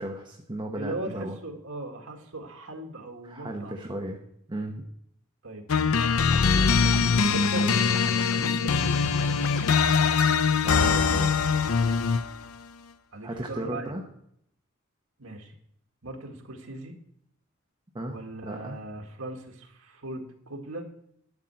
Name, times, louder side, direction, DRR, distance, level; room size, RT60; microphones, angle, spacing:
voice 1, 0.0-1.4 3.2-4.2 4.5-4.8 10.6-11.4 13.2-14.0 17.9-18.8, right 1 dB, 20° right, 1 dB, 1.0 m, -35 dB
voice 2, 0.7-4.1 5.4-5.7 6.1-7.8 8.3-10.1 13.1-13.9 15.2-15.5 16.0-17.0 18.1-20.8, right 2 dB, 80° right, 3 dB, 1.8 m, -39 dB
sound 1, 5.7-12.4, left 5 dB, 80° left, 0.6 m, -22 dB
11.5 x 5.7 x 7.5 m, 0.72 s
head